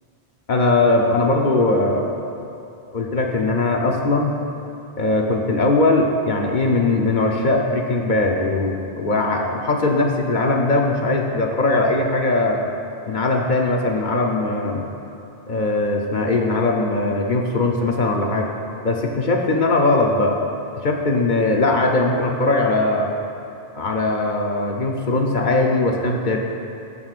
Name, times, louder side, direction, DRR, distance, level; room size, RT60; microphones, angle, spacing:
voice 1, 0.5-2.1 2.9-4.4 5.0-12.7 13.1-14.9 15.5-18.5 18.8-20.4 20.8-23.1 23.7-26.4, left 2 dB, 55° left, 1 dB, 0.8 m, -20 dB
15.0 x 5.4 x 2.4 m, 2.8 s
omnidirectional pair, 1.0 m